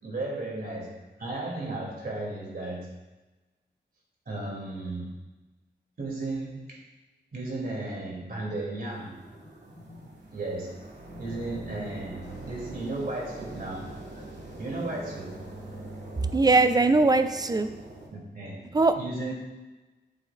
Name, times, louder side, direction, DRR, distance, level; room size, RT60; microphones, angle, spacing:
voice 1, 0.0-2.9 4.2-5.2 6.0-6.8 7.3-9.2 10.3-10.8 11.2-14.2 14.5-15.4 18.1-19.3, right 2 dB, 55° right, -3 dB, 3.1 m, -35 dB
sound 1, 8.8-18.1, right 1 dB, 75° right, 2.3 m, -43 dB
voice 2, 16.3-17.7 18.7-18.9, right 3 dB, 20° right, 9 dB, 0.5 m, -20 dB
12.5 x 7.6 x 2.5 m, 1.1 s
wide cardioid pair, 120°, 18 cm